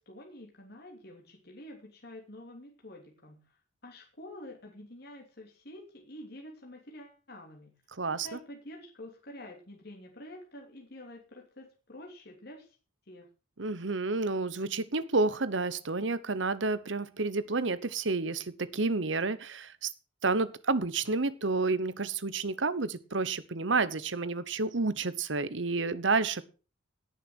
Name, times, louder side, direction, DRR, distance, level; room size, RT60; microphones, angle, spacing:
voice 1, 0.0-3.5 3.8-7.7 8.2-12.8 13.1-13.3, left 1 dB, 55° left, 1 dB, 3.0 m, -48 dB
voice 2, 8.0-8.4 13.6-19.9 20.2-26.4, right 3 dB, 70° right, 16 dB, 1.0 m, -30 dB
17.5 x 6.7 x 6.3 m, 0.35 s
head